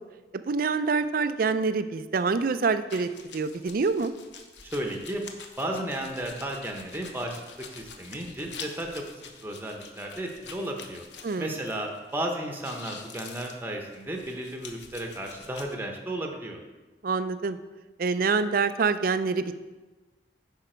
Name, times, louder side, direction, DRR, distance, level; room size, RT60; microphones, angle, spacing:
voice 1, 0.3-4.1 11.2-11.6 17.0-17.6 18.0-19.5, right 4 dB, 55° right, 12 dB, 0.4 m, -26 dB
sound 1, 2.9-12.2 12.4-15.7, left 6 dB, 80° left, 0.8 m, -46 dB
voice 2, 4.6-5.2 5.6-9.0 9.4-11.0 11.4-16.6, right 1 dB, 10° right, 2 dB, 0.8 m, -34 dB
8.9 x 5.7 x 4.4 m, 1.2 s
head